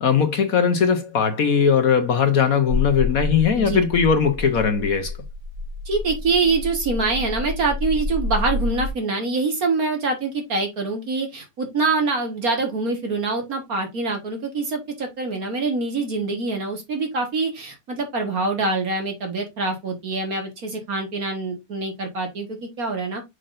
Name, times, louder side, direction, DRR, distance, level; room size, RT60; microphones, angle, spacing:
voice 1, 0.0-5.1, left 6 dB, 55° left, 1.2 m, -19 dB
sound 1, 2.7-8.9, left 3 dB, 35° right, 0.7 m, -29 dB
voice 2, 5.9-23.2, right 3 dB, 50° right, 1.9 m, -25 dB
6.4 x 5.8 x 2.5 m
omnidirectional pair, 2.0 m